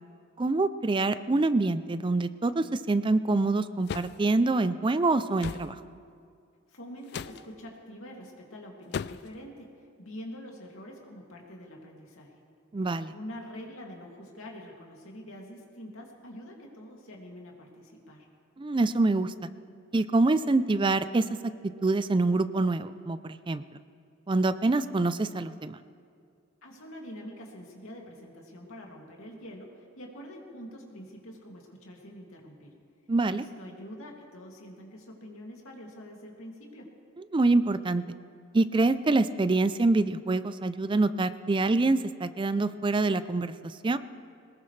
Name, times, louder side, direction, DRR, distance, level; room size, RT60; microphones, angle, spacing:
voice 1, 0.4-5.7 12.7-13.1 18.6-19.3 19.9-21.3 21.8-23.6 24.3-25.8 33.1-33.4 37.3-38.0 38.5-44.0, right 2 dB, 25° right, 13 dB, 0.4 m, -25 dB
sound 1, 3.9-4.2 5.4-5.7 7.1-7.4 8.9-9.3, left 7 dB, 55° left, 0.3 m, -36 dB
voice 2, 6.7-9.7 10.0-12.3 13.1-18.3 26.6-32.7 33.3-36.9, equal, 75° left, -1 dB, 2.5 m, -45 dB
21.5 x 19.5 x 3.3 m, 2.3 s
head